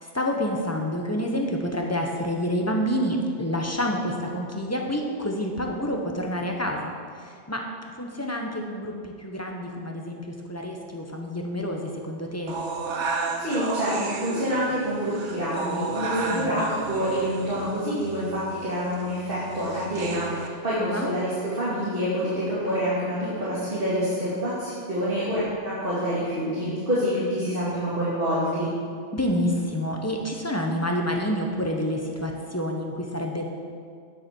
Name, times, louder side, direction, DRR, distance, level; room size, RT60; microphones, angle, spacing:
voice 1, 0.0-7.6 8.0-12.6 16.3-16.7 20.8-21.1 29.1-33.4, equal, 15° left, 1 dB, 1.0 m, -28 dB
sound 1, 12.5-20.5, right 4 dB, 80° right, 1.2 m, -33 dB
voice 2, 13.4-28.7, equal, 50° right, -10 dB, 2.7 m, -27 dB
9.4 x 7.4 x 6.2 m, 2.2 s
omnidirectional pair, 1.2 m